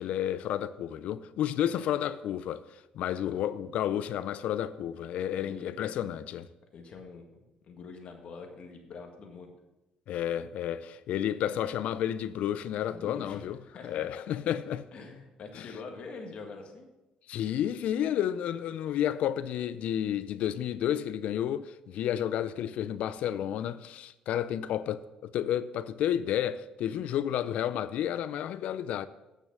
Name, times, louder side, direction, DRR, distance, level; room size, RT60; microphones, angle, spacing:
voice 1, 0.0-2.6 2.9-6.5 10.1-13.6 13.8-14.9 15.5-15.7 17.3-29.1, left 10 dB, 75° left, 0.4 m, -31 dB
voice 2, 5.4-5.7 6.7-9.5 12.8-14.1 14.9-16.9 26.9-27.0, left 4 dB, 55° left, 1.8 m, -45 dB
9.1 x 6.5 x 6.1 m
cardioid pair, 95°, 2 cm